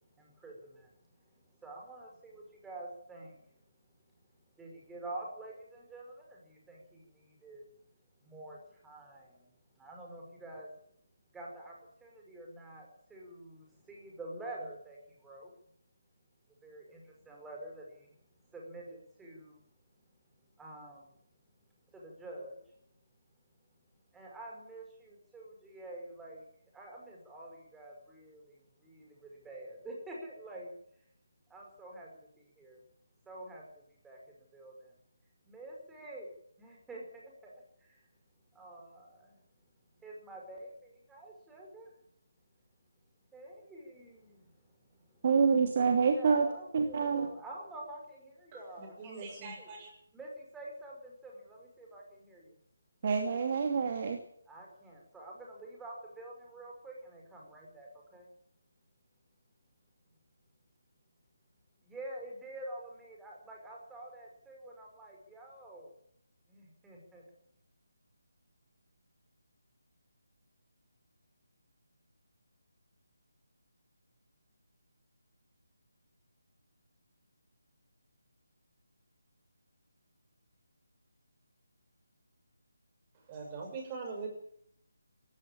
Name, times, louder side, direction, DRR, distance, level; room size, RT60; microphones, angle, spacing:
voice 1, 0.2-0.9 1.3-3.4 4.6-7.6 8.2-10.7 11.3-11.7 12.0-15.5 16.6-18.1 18.5-19.6 20.6-21.2 21.9-22.6 24.1-26.4 26.7-30.7 31.5-32.1 32.4-32.8 33.3-33.6 34.0-34.2 34.5-34.9 35.5-36.3 36.6-38.0 38.5-39.4 40.0-41.9 43.3-44.6 44.9-45.3 46.1-49.7 50.1-52.6 54.5-58.3 61.8-65.9 66.5-67.2, right 1 dB, 5° right, -2 dB, 5.8 m, -48 dB
voice 2, 45.2-46.5 46.7-47.3 53.0-54.2, right 5 dB, 40° right, 4 dB, 2.8 m, -27 dB
voice 3, 48.5-49.9 83.3-84.3, right 4 dB, 25° right, 2 dB, 7.0 m, -42 dB
19.0 x 16.0 x 8.9 m, 0.68 s
figure-of-eight pair, 150°, 0 cm